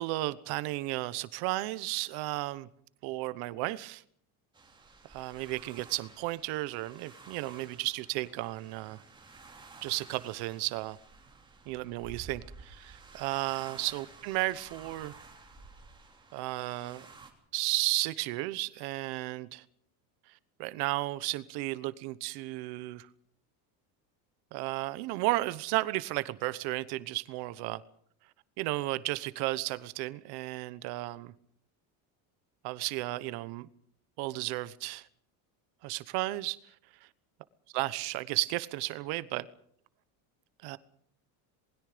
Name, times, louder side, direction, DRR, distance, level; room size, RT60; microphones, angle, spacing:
voice 1, 0.0-2.7 3.0-4.0 5.0-9.0 9.8-11.0 11.7-15.2 16.3-17.1 17.5-19.6 20.3-23.1 24.5-27.8 28.6-31.3 32.6-33.7 34.2-35.1 35.8-37.1 37.7-39.5 40.6-40.8, right 19 dB, 60° right, 15 dB, 1.1 m, -34 dB
sound 1, 4.5-17.3, right 4 dB, 10° right, 3.2 m, -52 dB
27.5 x 21.0 x 5.1 m, 0.64 s
cardioid pair, 175°, 43 cm